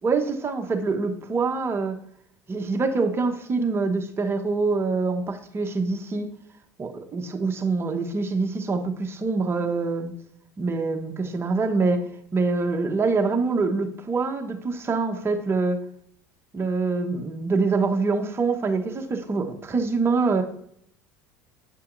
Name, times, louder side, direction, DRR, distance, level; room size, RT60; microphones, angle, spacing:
voice 1, 0.0-2.0 2.5-6.3 6.8-10.1 10.6-12.1 12.3-15.8 16.5-20.4, right 4 dB, 25° right, 4 dB, 1.1 m, -25 dB
8.5 x 5.6 x 2.6 m, 0.69 s
hypercardioid pair, 85°, 9 cm